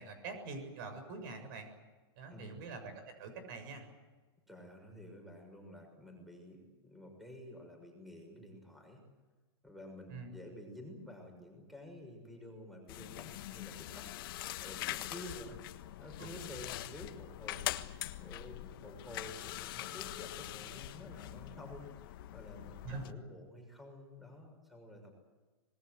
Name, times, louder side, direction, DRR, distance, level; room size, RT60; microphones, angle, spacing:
voice 1, 0.0-1.7 2.2-3.9 10.1-10.3 16.2-16.3 22.8-23.1, right 4 dB, 50° right, 8 dB, 7.2 m, -45 dB
voice 2, 4.5-9.0 9.6-14.2 14.6-15.6 16.0-25.1, left 1 dB, ahead, 3 dB, 6.3 m, -51 dB
sound 1, 12.9-23.1, left 15 dB, 55° left, 1.5 m, -43 dB
26.0 x 21.5 x 8.0 m, 1.3 s
hypercardioid pair, 145°, 14 cm